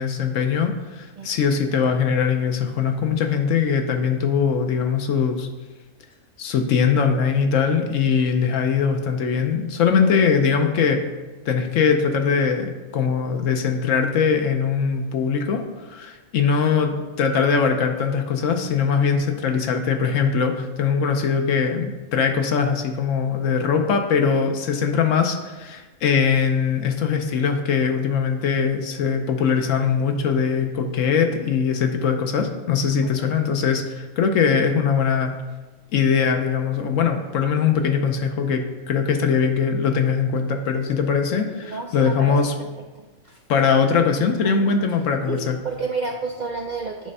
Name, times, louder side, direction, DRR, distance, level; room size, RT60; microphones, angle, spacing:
voice 1, 0.0-5.5 6.4-11.0 11.5-16.9 17.2-35.4 35.9-42.5 43.5-45.6, left 6 dB, 70° left, 5 dB, 1.0 m, -21 dB
voice 2, 16.7-17.0 33.0-33.3 41.6-42.7 43.3-43.4 44.4-44.8 45.3-47.1, right 4 dB, 60° right, 1 dB, 0.4 m, -31 dB
8.6 x 3.2 x 5.4 m, 1.2 s
omnidirectional pair, 1.4 m